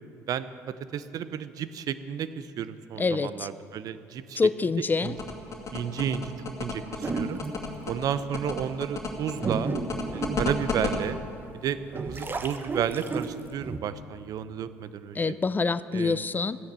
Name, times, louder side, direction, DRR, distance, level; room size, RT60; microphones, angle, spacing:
voice 1, 0.9-4.4 5.0-5.1 5.7-6.3 6.6-7.4 7.9-9.7 10.1-11.2 11.6-15.4 15.9-16.2, right 8 dB, 55° right, 13 dB, 0.8 m, -32 dB
voice 2, 3.0-3.5 4.4-5.1 15.1-16.6, left 4 dB, 25° left, 16 dB, 0.5 m, -26 dB
sound 1, 5.0-11.0, left 5 dB, 40° left, 2.3 m, -32 dB
sound 2, 7.0-7.7 8.4-8.5 9.1-11.2 11.7-13.8, right 3 dB, 30° right, 1.2 m, -32 dB
14.5 x 10.5 x 7.4 m, 2.7 s
hypercardioid pair, 65°, 7 cm